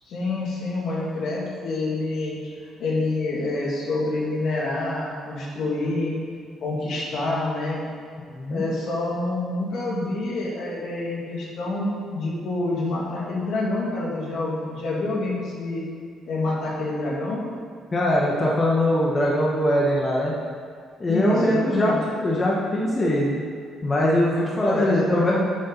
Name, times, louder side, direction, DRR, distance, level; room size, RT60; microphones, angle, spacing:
voice 1, 0.1-2.3 2.6-6.2 6.6-7.8 8.5-15.9 16.3-17.4 21.1-22.0 24.6-25.4, left 2 dB, 65° left, -4 dB, 2.4 m, -27 dB
voice 2, 8.3-8.6 17.9-20.3 21.0-23.4 23.8-25.3, left 1 dB, 25° left, -4 dB, 1.2 m, -22 dB
10.0 x 6.9 x 4.1 m, 2.2 s
cardioid pair, 130°, 0 cm